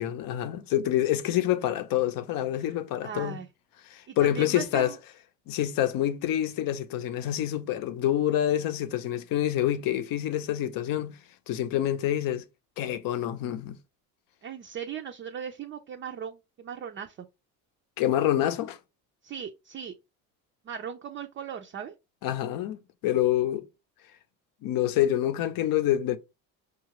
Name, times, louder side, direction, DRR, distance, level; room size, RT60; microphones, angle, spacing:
voice 1, 0.0-3.4 3.9-4.9 5.5-11.2 11.5-12.4 12.8-13.8 18.0-18.8 22.2-23.7 24.6-26.2, left 12 dB, 65° left, 0.7 m, -27 dB
voice 2, 3.0-3.5 4.1-5.0 14.4-17.3 19.2-19.9 20.6-21.9 23.3-23.4, right 8 dB, 30° right, 0.4 m, -38 dB
4.9 x 2.4 x 3.0 m
supercardioid pair, 95°, 38 cm